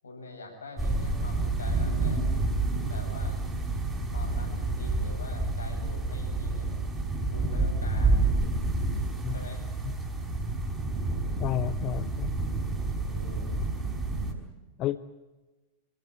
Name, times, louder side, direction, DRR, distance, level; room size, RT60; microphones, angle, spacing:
voice 1, 0.0-2.2 2.9-3.4 4.1-6.7 7.3-8.3 9.3-9.6 13.0-13.6, left 3 dB, 75° left, 2 dB, 7.9 m, -44 dB
sound 1, 0.8-14.3, right 2 dB, 10° right, 5.8 m, -29 dB
voice 2, 11.4-12.3 14.8-15.0, left 14 dB, 35° left, 13 dB, 0.9 m, -31 dB
27.5 x 16.0 x 9.2 m, 1.2 s
figure-of-eight pair, 90°, 0 cm